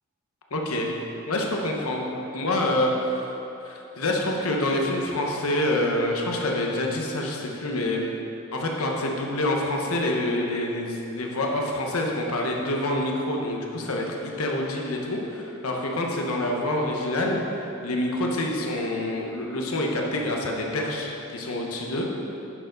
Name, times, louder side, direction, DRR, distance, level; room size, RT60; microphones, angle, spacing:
voice 1, 0.5-0.9 1.3-3.3 3.6-8.1 8.5-22.1, left 1 dB, 85° left, 0 dB, 1.2 m, -27 dB
10.5 x 6.8 x 4.0 m, 2.9 s
head